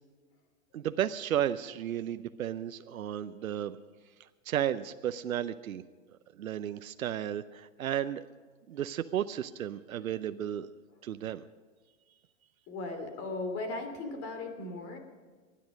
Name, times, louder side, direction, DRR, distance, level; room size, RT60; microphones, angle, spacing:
voice 1, 0.7-3.8 4.2-5.8 6.1-8.2 8.7-10.7 11.0-11.4, right 10 dB, 85° right, 11 dB, 0.7 m, -33 dB
voice 2, 12.7-15.0, left 2 dB, 35° left, 6 dB, 2.9 m, -37 dB
24.5 x 10.5 x 5.2 m, 1.4 s
hypercardioid pair, 130°, 41 cm